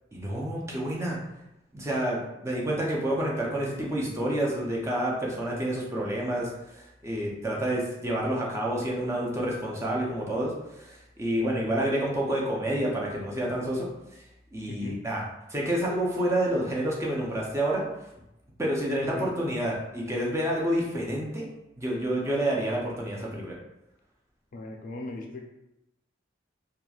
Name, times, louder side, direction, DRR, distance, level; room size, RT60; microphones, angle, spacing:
voice 1, 0.1-1.2 1.7-13.9 14.5-15.2 15.5-17.8 18.6-21.5 21.8-23.6, right 1 dB, 15° right, -3 dB, 0.5 m, -29 dB
voice 2, 14.7-15.0 19.0-19.3 24.5-25.4, left 2 dB, 45° left, 2 dB, 0.4 m, -39 dB
3.0 x 2.3 x 2.3 m, 0.91 s
head